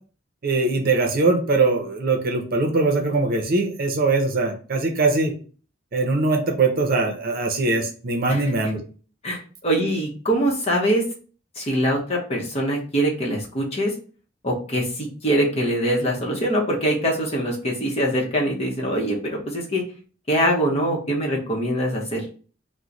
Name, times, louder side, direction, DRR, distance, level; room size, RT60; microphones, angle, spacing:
voice 1, 0.4-5.3 5.9-8.8, right 3 dB, 50° right, 3 dB, 0.6 m, -21 dB
voice 2, 9.2-11.0 11.6-13.9 14.4-19.2 19.5-19.8 20.3-22.2, right 1 dB, 35° left, -2 dB, 0.9 m, -23 dB
3.0 x 2.1 x 3.8 m, 0.39 s
head